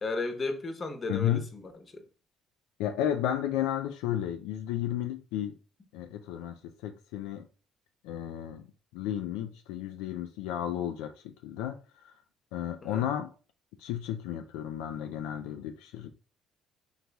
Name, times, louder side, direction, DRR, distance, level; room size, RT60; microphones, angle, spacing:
voice 1, 0.0-2.0 12.8-13.0, left 3 dB, 40° left, 0.9 m, -35 dB
voice 2, 1.1-1.5 2.8-5.5 5.9-7.5 8.0-8.6 8.9-12.1 12.5-13.3 13.8-16.1, left 11 dB, 85° left, 0.3 m, -33 dB
4.0 x 3.0 x 3.4 m
supercardioid pair, 70°, 0 cm